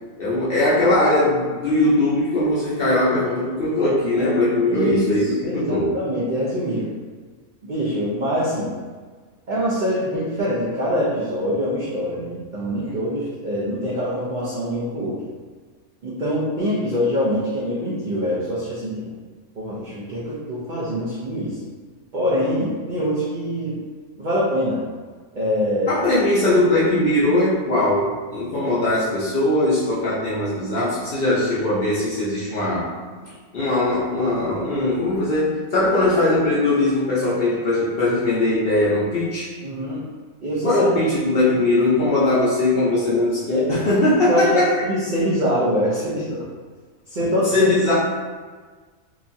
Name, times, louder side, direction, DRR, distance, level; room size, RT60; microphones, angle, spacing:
voice 1, 0.2-5.2 5.5-5.9 25.9-32.9 33.5-39.5 40.6-44.7 47.5-47.9, left 2 dB, 60° left, -9 dB, 0.6 m, -20 dB
voice 2, 4.7-6.8 7.6-8.7 9.5-15.2 16.0-19.1 19.6-21.6 22.1-23.8 24.2-24.8 25.3-25.9 39.6-40.0 40.4-40.9 44.3-46.4 47.1-47.7, equal, 65° right, -8 dB, 0.4 m, -24 dB
2.9 x 2.3 x 2.6 m, 1.5 s
omnidirectional pair, 1.5 m